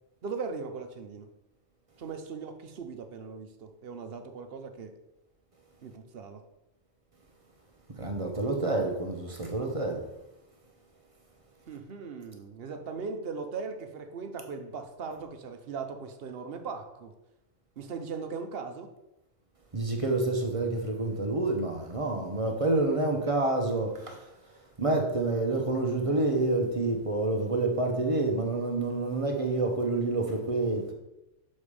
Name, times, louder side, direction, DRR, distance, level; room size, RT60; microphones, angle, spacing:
voice 1, 0.2-1.3 2.0-4.9 5.8-6.4 11.7-17.1 17.8-18.9, right 5 dB, 55° right, 0.9 m, -39 dB
voice 2, 8.0-10.0 19.7-24.3 24.8-30.9, right 2 dB, 30° right, 0.9 m, -28 dB
7.0 x 4.3 x 4.9 m
omnidirectional pair, 1.3 m